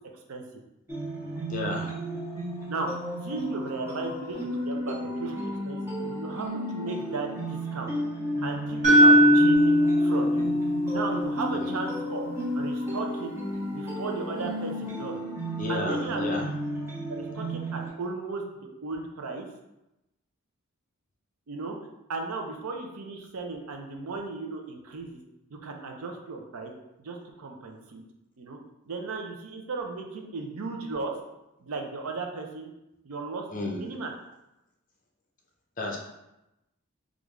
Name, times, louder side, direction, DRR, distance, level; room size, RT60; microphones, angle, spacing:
sound 1, 0.9-17.9, right 1 dB, 10° right, 0.6 m, -34 dB
voice 1, 1.5-2.0 11.5-11.8 15.6-16.5 33.5-33.8 35.8-36.0, left 2 dB, 35° left, 0 dB, 0.5 m, -32 dB
voice 2, 3.2-7.9 8.4-10.5 10.9-12.2 12.5-13.4 13.7-15.2 15.7-16.3 17.1-19.5 21.5-21.8 22.1-25.2 25.5-26.7 27.0-28.0 28.4-28.6 28.9-31.1 31.6-32.7 33.0-34.1, right 3 dB, 90° right, 2 dB, 0.5 m, -35 dB
sound 2, 8.8-12.9, equal, 35° right, 0.8 m, -21 dB
3.6 x 2.5 x 3.1 m, 0.92 s
head